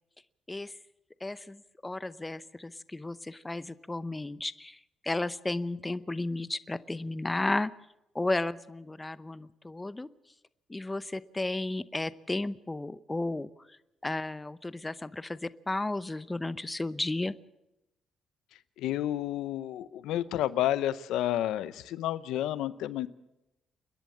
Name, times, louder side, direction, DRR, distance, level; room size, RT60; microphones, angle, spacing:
voice 1, 1.2-7.7 8.1-10.1 10.7-13.8 14.0-17.3, left 2 dB, 15° left, 15 dB, 0.7 m, -33 dB
voice 2, 18.8-23.1, left 13 dB, 90° left, 16 dB, 0.7 m, -30 dB
29.0 x 10.5 x 8.5 m, 0.92 s
cardioid pair, 90°, 0 cm